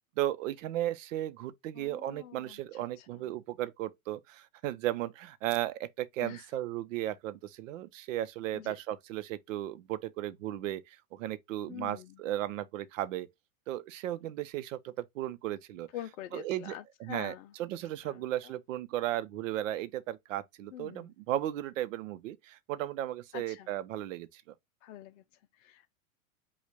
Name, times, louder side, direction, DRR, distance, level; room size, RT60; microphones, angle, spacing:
voice 1, 0.0-13.3 13.7-15.9 16.3-16.8 17.0-17.3 17.6-24.5, right 13 dB, 65° right, 0.8 m, -35 dB
voice 2, 1.7-3.3 6.2-6.5 8.5-8.8 11.7-12.2 15.9-17.5 18.0-18.5 20.7-21.1 23.3-23.7 24.8-25.9, left 12 dB, 60° left, 0.6 m, -46 dB
5.3 x 2.4 x 3.6 m
hypercardioid pair, 110°, 42 cm